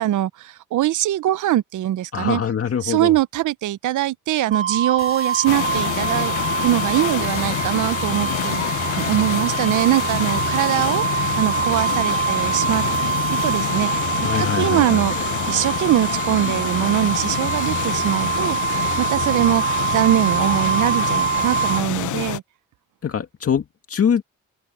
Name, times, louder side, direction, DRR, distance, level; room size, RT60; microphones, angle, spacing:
voice 1, 0.0-2.4 2.8-8.7 9.0-12.8 13.3-15.2 15.5-22.4, right 13 dB, 75° right, 0.7 m, -22 dB
voice 2, 2.1-3.1 14.2-15.0 23.0-24.2, left 7 dB, 50° left, 2.2 m, -23 dB
sound 1, 4.5-21.8, right 8 dB, 40° right, 2.3 m, -25 dB
sound 2, 5.0-14.8, left 4 dB, 35° left, 3.8 m, -43 dB
sound 3, 5.5-22.4, left 14 dB, 75° left, 0.7 m, -27 dB
cardioid pair, 105°, 30 cm